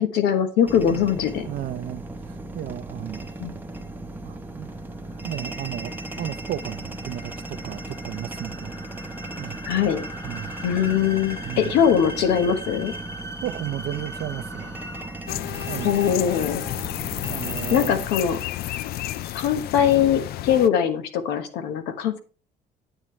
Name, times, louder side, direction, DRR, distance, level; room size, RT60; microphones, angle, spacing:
voice 1, 0.0-1.5 3.4-3.6 9.6-10.1 10.6-12.9 15.8-16.6 17.7-18.4 19.3-22.2, left 8 dB, 90° left, 1.3 m, -21 dB
sound 1, 0.6-18.1, right 2 dB, 10° right, 0.8 m, -37 dB
voice 2, 1.5-3.3 4.2-4.7 5.2-8.7 9.4-9.6 10.2-10.5 11.4-11.7 13.4-14.8 15.7-16.0 17.3-18.1, right 13 dB, 65° right, 0.6 m, -34 dB
sound 2, 4.9-15.4, equal, 20° left, 1.1 m, -41 dB
sound 3, 15.3-20.7, left 14 dB, 65° left, 0.4 m, -31 dB
8.9 x 8.1 x 3.2 m
cardioid pair, 110°, 17 cm